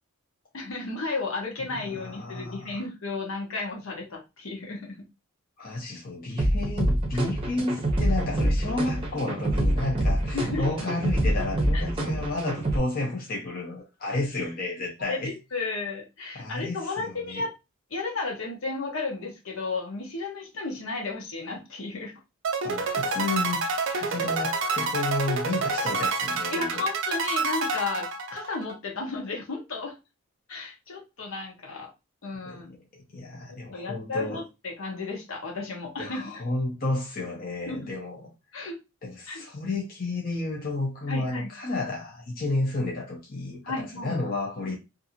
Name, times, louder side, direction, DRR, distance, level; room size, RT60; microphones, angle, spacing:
voice 1, 0.5-5.0 10.3-10.7 11.7-12.1 15.1-17.5 17.9-22.1 26.5-29.9 30.5-31.9 32.2-32.8 33.5-36.4 37.7-37.9 38.5-38.8 39.3-39.4 41.1-41.5 43.6-44.1, left 3 dB, 70° left, 0.9 m, -33 dB
voice 2, 1.7-2.8 5.6-15.3 16.3-17.4 22.6-23.6 23.9-26.8 32.4-32.6 33.1-34.4 36.0-38.2 39.0-44.8, left 2 dB, 45° left, 0.7 m, -31 dB
sound 1, 6.4-12.8, right 1 dB, 25° right, 0.7 m, -26 dB
sound 2, 22.4-28.7, right 3 dB, 60° right, 0.4 m, -28 dB
2.6 x 2.5 x 2.7 m
head